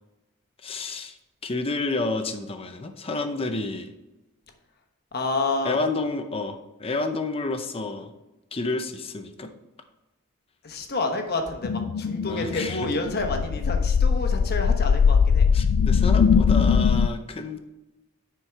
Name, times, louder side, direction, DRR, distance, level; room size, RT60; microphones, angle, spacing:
voice 1, 0.6-1.2 1.4-3.9 5.6-8.1 8.5-9.5 12.3-12.9 15.5-17.6, left 3 dB, 25° left, 7 dB, 0.6 m, -30 dB
voice 2, 5.1-5.8 10.6-15.5, left 2 dB, 45° left, 4 dB, 1.2 m, -29 dB
sound 1, 11.6-17.1, left 6 dB, 65° left, 0.3 m, -21 dB
9.9 x 4.6 x 4.7 m, 1.0 s
head